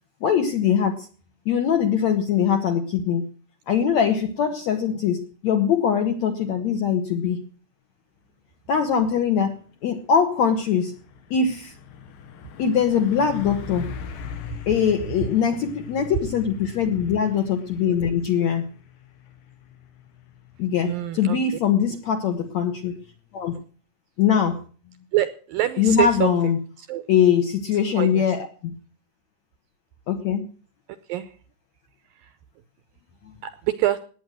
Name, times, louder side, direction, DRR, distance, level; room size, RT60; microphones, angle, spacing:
voice 1, 0.2-1.1 1.5-3.3 3.7-7.4 8.7-9.5 9.8-11.0 11.3-11.7 12.6-13.9 14.7-18.7 20.6-23.0 23.3-23.6 24.2-24.6 25.8-26.6 27.1-28.5 30.1-30.4, left 7 dB, 65° left, 7 dB, 1.8 m, -22 dB
Truck, 9.3-23.6, left 7 dB, 85° left, 3.9 m, -42 dB
voice 2, 20.8-21.4 25.1-26.4 26.8-27.0 28.0-28.2 31.1-31.3 33.4-34.0, right 13 dB, 75° right, 12 dB, 2.1 m, -25 dB
18.5 x 9.2 x 6.2 m, 0.42 s
omnidirectional pair, 4.8 m